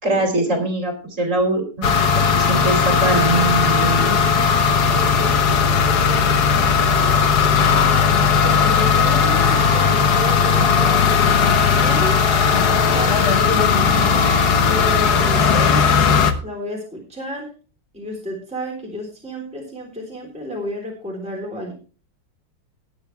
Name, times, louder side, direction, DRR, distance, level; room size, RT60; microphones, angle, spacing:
voice 1, 0.0-4.2, right 2 dB, 35° right, 4 dB, 3.1 m, -22 dB
sound 1, 1.8-16.3, left 6 dB, 55° left, 1.6 m, -17 dB
voice 2, 4.9-7.8 8.4-11.1 11.5-12.2 12.6-14.2 14.7-15.9 16.4-17.5 17.9-21.7, equal, 5° right, -2 dB, 3.6 m, -31 dB
19.5 x 8.3 x 3.3 m, 0.36 s
omnidirectional pair, 2.3 m